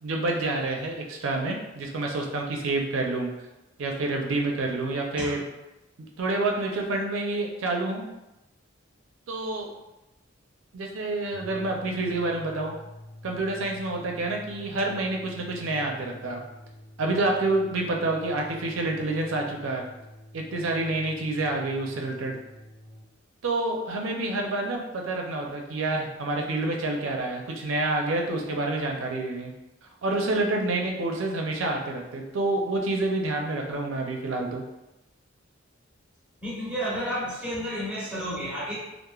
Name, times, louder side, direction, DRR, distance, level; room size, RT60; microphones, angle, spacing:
voice 1, 0.0-3.3 3.8-5.4 6.2-8.0 9.3-9.7 10.7-12.7 13.2-16.4 17.0-19.9 20.3-22.4 23.4-29.5 30.0-34.6, right 2 dB, 75° right, 1 dB, 0.5 m, -28 dB
sound 1, 11.2-23.1, left 1 dB, 60° left, 0.8 m, -47 dB
voice 2, 36.4-38.8, equal, 5° right, -8 dB, 1.0 m, -31 dB
3.0 x 2.0 x 2.3 m, 0.97 s
head